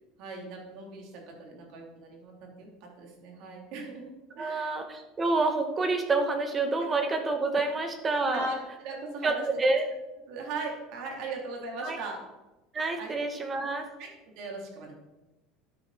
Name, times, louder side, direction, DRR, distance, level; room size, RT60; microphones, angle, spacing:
voice 1, 0.2-4.8 7.6-7.8 8.3-9.5 10.3-12.2 13.0-13.2 14.0-14.1 14.4-14.9, right 3 dB, 60° right, 0 dB, 3.5 m, -39 dB
voice 2, 4.4-8.5 9.2-9.8 11.8-12.0 12.7-13.8, right 3 dB, 20° right, 5 dB, 1.5 m, -28 dB
12.5 x 8.8 x 4.3 m, 1.0 s
cardioid pair, 140°, 0 cm